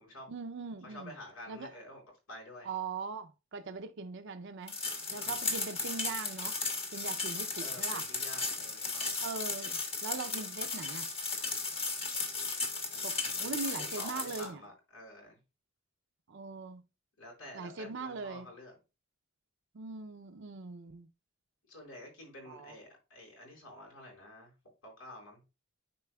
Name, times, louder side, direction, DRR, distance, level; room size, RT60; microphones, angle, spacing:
voice 1, 0.3-1.1 1.5-1.7 2.6-4.8 5.1-6.6 6.9-8.1 9.2-11.1 13.0-14.6 16.3-16.8 17.5-18.5 19.7-21.1 22.5-22.7, right 4 dB, 60° right, 0.5 m, -41 dB
voice 2, 0.8-2.0 2.3-2.7 5.1-5.5 7.6-9.4 12.3-12.5 12.9-15.4 17.2-18.7 21.7-24.5 24.8-25.4, left 1 dB, 90° left, 4.2 m, -50 dB
sound 1, 4.7-14.5, left 3 dB, 30° left, 1.3 m, -35 dB
10.5 x 4.4 x 2.3 m
head